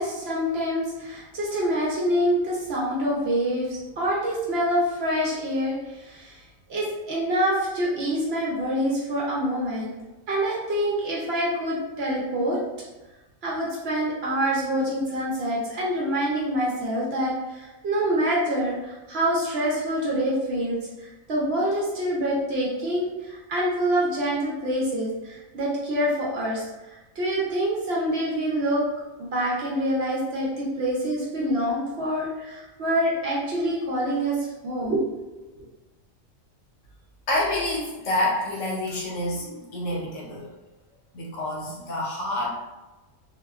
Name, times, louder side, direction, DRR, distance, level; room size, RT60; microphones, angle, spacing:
voice 1, 0.0-6.4 6.7-9.9 10.3-12.6 13.4-28.8 29.2-35.3, equal, 60° right, -5 dB, 0.8 m, -26 dB
voice 2, 37.3-40.5 41.1-42.6, left 1 dB, 70° left, -4 dB, 1.1 m, -28 dB
2.7 x 2.2 x 2.2 m, 1.1 s
omnidirectional pair, 1.4 m